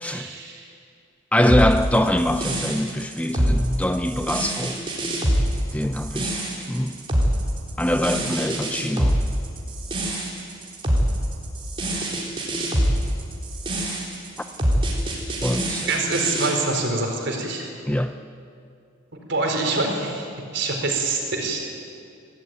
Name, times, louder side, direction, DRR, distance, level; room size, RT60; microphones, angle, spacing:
voice 1, 0.0-0.7 15.9-17.7 19.3-21.8, right 3 dB, 55° right, 2 dB, 4.7 m, -25 dB
voice 2, 1.3-4.8 5.7-6.4 6.7-7.0 7.8-9.2 15.4-15.9 17.9-18.1, left 1 dB, 5° left, 8 dB, 0.6 m, -23 dB
sound 1, 1.5-16.6, right 1 dB, 25° right, 4.1 m, -25 dB
25.0 x 17.0 x 9.4 m, 2.4 s
head